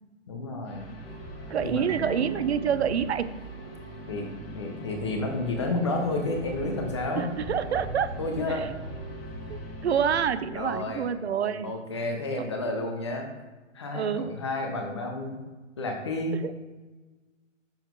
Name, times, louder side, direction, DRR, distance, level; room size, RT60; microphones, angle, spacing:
voice 1, 0.3-0.9 1.6-1.9 4.1-4.3 4.5-7.3 8.2-8.7 10.5-11.1 11.6-13.3 13.7-15.4 15.8-16.4, left 2 dB, 25° left, 2 dB, 0.6 m, -31 dB
sound 1, 0.7-10.2, right 1 dB, 50° left, 1.2 m, -44 dB
sound 2, 1.0-11.2, right 1 dB, ahead, 1.0 m, -42 dB
voice 2, 1.5-3.3 7.2-8.1 8.5-8.7 9.5-11.7 12.4-12.5 13.9-14.3 16.3-16.5, right 8 dB, 55° right, 13 dB, 0.5 m, -27 dB
Marimba xylophone, 1.9-4.5, right 3 dB, 35° right, 1.4 m, -41 dB
7.0 x 3.8 x 4.5 m, 1.3 s
hypercardioid pair, 165°, 39 cm